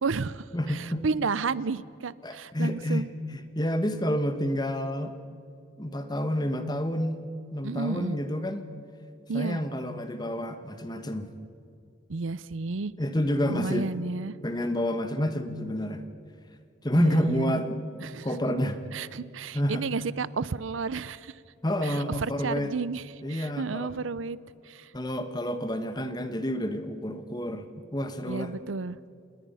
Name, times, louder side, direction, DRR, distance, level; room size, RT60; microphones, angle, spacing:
voice 1, 0.0-3.1 7.6-8.2 9.3-9.6 12.1-12.9 13.5-14.4 16.9-17.5 18.0-18.3 18.9-21.4 21.8-24.4 24.7-24.9 28.2-29.0, right 4 dB, 85° right, 18 dB, 0.6 m, -32 dB
voice 2, 0.5-1.0 2.2-5.1 5.8-7.2 7.5-8.7 9.3-11.3 13.0-13.9 14.4-16.0 16.8-17.8 18.2-18.8 19.5-19.9 21.6-22.7 23.2-23.9 24.9-28.5, equal, 20° left, 9 dB, 1.3 m, -29 dB
27.0 x 21.0 x 5.6 m, 2.5 s
head